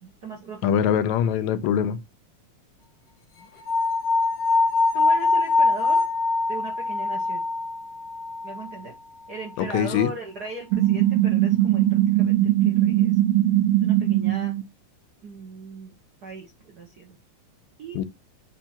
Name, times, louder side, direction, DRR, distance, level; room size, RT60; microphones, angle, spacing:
voice 1, 0.0-0.8 4.9-6.0 6.5-7.4 8.4-8.9 9.3-13.1 13.8-14.5 15.2-15.9 16.2-17.2 17.8-18.0, right 3 dB, 55° right, 1.2 m, -38 dB
voice 2, 0.6-2.0 9.6-10.2 17.9-18.0, left 9 dB, 80° left, 1.9 m, -23 dB
sound 1, 3.7-8.8, left 3 dB, 60° left, 1.5 m, -23 dB
sound 2, 10.7-14.6, right 14 dB, 85° right, 2.1 m, -20 dB
7.2 x 2.8 x 5.8 m
omnidirectional pair, 3.3 m